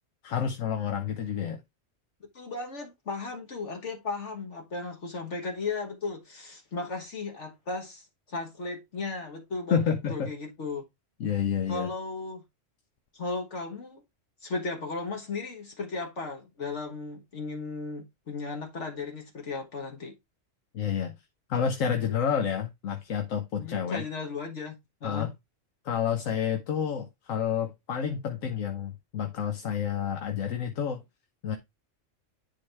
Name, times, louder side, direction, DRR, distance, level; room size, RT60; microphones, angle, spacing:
voice 1, 0.2-1.6 9.7-10.3 11.2-11.9 20.7-21.2 21.5-24.0 25.0-25.3 25.8-31.0 31.4-31.6, left 8 dB, 90° left, 1.3 m, -29 dB
voice 2, 2.3-10.8 11.7-12.4 13.1-14.0 14.4-20.2 23.6-24.7 25.0-25.3, left 3 dB, 65° left, 1.6 m, -36 dB
10.5 x 4.0 x 3.3 m
omnidirectional pair, 1.3 m